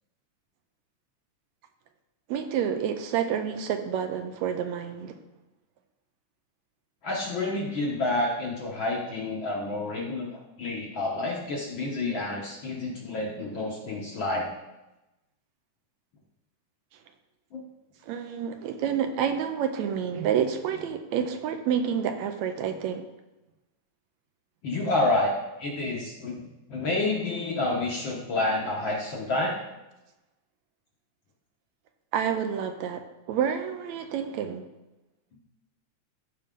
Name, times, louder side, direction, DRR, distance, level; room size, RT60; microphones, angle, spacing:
voice 1, 2.3-5.2 18.1-23.1 32.1-34.6, right 8 dB, 75° right, 7 dB, 1.9 m, -29 dB
voice 2, 7.0-14.5 17.5-17.6 24.6-25.3 25.6-29.5 35.3-35.4, left 2 dB, 55° left, -2 dB, 1.5 m, -29 dB
14.5 x 5.3 x 3.7 m, 0.99 s
omnidirectional pair, 3.4 m